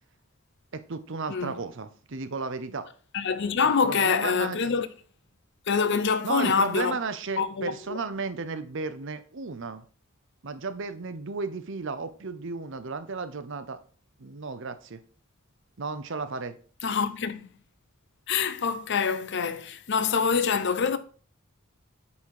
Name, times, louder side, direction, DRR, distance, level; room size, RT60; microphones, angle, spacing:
voice 1, 0.7-2.9 3.6-4.7 6.2-9.9 10.4-13.8 14.2-15.0 15.8-16.6, right 4 dB, 60° right, 0.7 m, -34 dB
voice 2, 3.1-4.9 5.7-6.9 7.4-8.0 16.8-17.4 18.3-21.0, left 5 dB, 55° left, 0.6 m, -25 dB
8.6 x 4.1 x 4.7 m
head